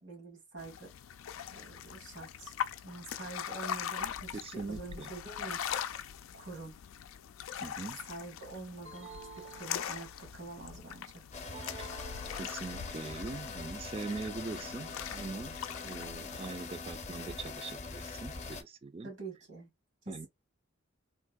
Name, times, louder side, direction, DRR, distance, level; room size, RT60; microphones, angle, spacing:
voice 1, 0.0-0.9 1.5-2.6 2.8-5.6 6.3-6.8 8.1-11.2 19.0-19.7 20.1-20.3, right 3 dB, 85° right, 1.8 m, -46 dB
sound 1, 0.6-16.5, left 9 dB, 90° left, 0.4 m, -42 dB
voice 2, 4.3-5.1 7.6-8.0 11.8-11.9 12.3-19.1 20.1-20.3, right 3 dB, 30° right, 0.4 m, -42 dB
sound 2, 8.9-10.4 11.5-13.0, right 4 dB, 65° right, 0.7 m, -51 dB
sound 3, 11.3-18.6, left 4 dB, 35° left, 0.6 m, -43 dB
3.6 x 2.7 x 2.3 m
head